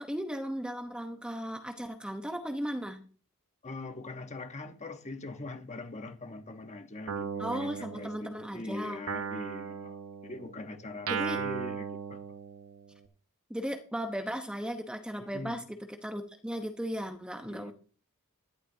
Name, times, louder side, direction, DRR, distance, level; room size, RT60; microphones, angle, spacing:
voice 1, 0.0-3.0 7.4-9.0 11.1-11.4 13.5-15.6 16.0-17.7, equal, 5° right, 0.9 m, -36 dB
voice 2, 3.6-12.3 15.2-15.6 17.4-17.7, left 2 dB, 30° left, 1.1 m, -42 dB
Guitar, 7.1-8.6 9.1-13.0, right 6 dB, 70° right, 1.0 m, -37 dB
14.5 x 11.5 x 2.7 m
head